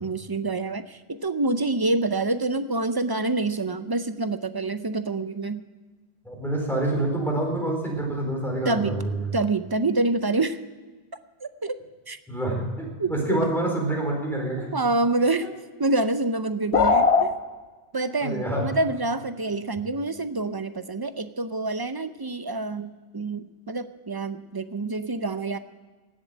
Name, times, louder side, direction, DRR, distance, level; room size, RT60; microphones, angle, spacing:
voice 1, 0.0-5.6 8.6-9.0 9.3-10.6 11.4-11.8 12.1-12.2 13.0-13.1 14.7-15.5 15.8-17.3 17.9-25.6, right 2 dB, 30° right, 11 dB, 0.5 m, -27 dB
voice 2, 6.2-9.2 12.3-12.6 13.1-14.7 18.2-18.7, right 1 dB, ahead, -1 dB, 4.2 m, -26 dB
sound 1, 16.7-17.3, left 4 dB, 85° left, 1.4 m, -18 dB
17.5 x 7.4 x 7.9 m, 1.3 s
omnidirectional pair, 1.1 m